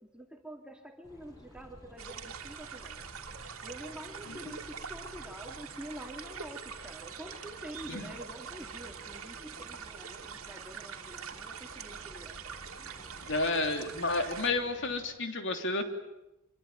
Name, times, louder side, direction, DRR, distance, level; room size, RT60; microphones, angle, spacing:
voice 1, 0.1-3.0 3.6-12.4 12.8-12.9, right 1 dB, 5° right, 3 dB, 3.1 m, -47 dB
sound 1, 1.0-15.1, equal, 20° left, 7.9 m, -55 dB
sound 2, 2.0-14.5, right 6 dB, 80° right, 2.9 m, -44 dB
voice 2, 13.3-15.8, left 3 dB, 60° left, 6 dB, 3.1 m, -31 dB
26.0 x 24.5 x 9.2 m, 0.93 s
head